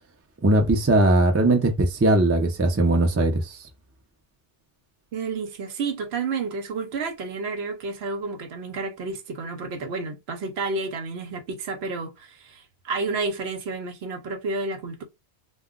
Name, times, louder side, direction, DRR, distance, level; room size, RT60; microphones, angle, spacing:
voice 1, 0.4-3.6, right 2 dB, 20° right, 0.3 m, -20 dB
voice 2, 5.1-15.0, right 3 dB, 75° right, 0.9 m, -30 dB
2.2 x 2.2 x 3.6 m
omnidirectional pair, 1.1 m